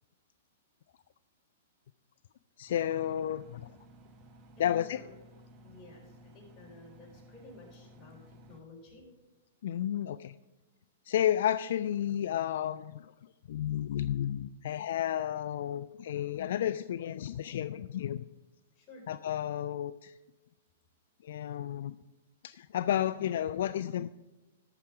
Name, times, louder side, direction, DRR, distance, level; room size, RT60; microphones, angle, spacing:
voice 1, 2.6-3.7 4.6-5.0 9.6-10.3 11.1-13.1 13.5-18.2 19.1-20.1 21.2-22.0 22.4-24.1, left 11 dB, 65° left, 13 dB, 0.3 m, -32 dB
Engine, 2.7-8.6, equal, 30° right, 1.2 m, -56 dB
voice 2, 4.6-5.1 5.6-9.0 18.7-19.1, left 2 dB, 30° left, -2 dB, 4.0 m, -53 dB
14.0 x 5.7 x 4.8 m, 1.1 s
hypercardioid pair, 135°, 0 cm